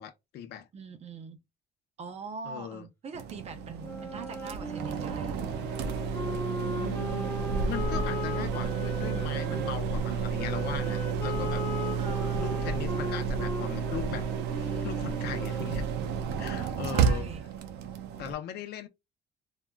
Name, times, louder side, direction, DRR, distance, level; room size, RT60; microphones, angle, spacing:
voice 1, 0.0-0.7 2.4-2.9 6.7-11.7 12.4-14.3 14.5-15.8 16.4-17.3 18.2-18.9, left 9 dB, 75° left, 0.6 m, -39 dB
voice 2, 0.7-1.4 2.0-5.4 12.0-12.6 16.8-17.4, right 5 dB, 40° right, 0.7 m, -42 dB
sound 1, 3.1-18.3, right 6 dB, 90° right, 0.5 m, -31 dB
Wind instrument woodwind instrument, 3.8-9.7 10.4-16.2, left 2 dB, 15° left, 0.6 m, -38 dB
3.6 x 2.2 x 2.2 m
cardioid pair, 110°, 17 cm